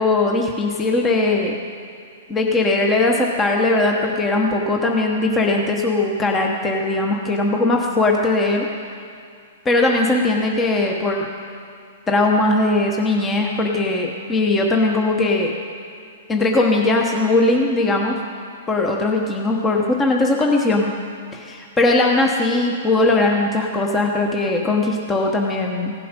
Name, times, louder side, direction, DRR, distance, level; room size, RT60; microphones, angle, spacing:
voice 1, 0.0-1.5 2.3-8.7 9.6-11.3 12.1-15.5 16.3-18.2 18.7-20.9 21.3-25.9, left 2 dB, 15° left, 0 dB, 1.1 m, -19 dB
16.0 x 7.6 x 5.3 m, 2.4 s
hypercardioid pair, 130°, 0 cm